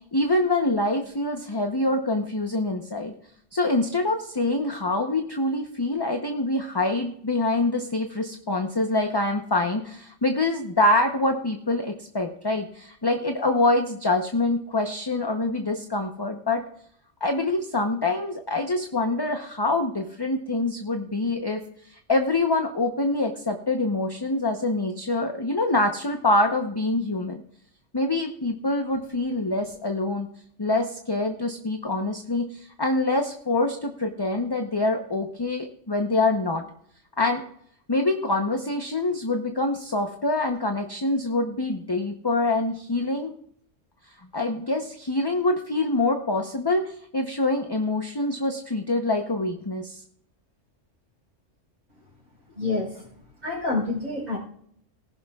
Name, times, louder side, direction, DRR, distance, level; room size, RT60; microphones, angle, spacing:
voice 1, 0.1-3.1 3.5-16.6 17.2-27.4 27.9-30.3 30.6-36.6 37.2-37.4 37.9-43.3 44.3-50.0, left 2 dB, 20° left, 4 dB, 0.8 m, -25 dB
voice 2, 52.5-53.0 53.4-54.4, left 3 dB, 30° right, -8 dB, 4.9 m, -27 dB
19.0 x 11.0 x 2.4 m, 0.65 s
omnidirectional pair, 1.3 m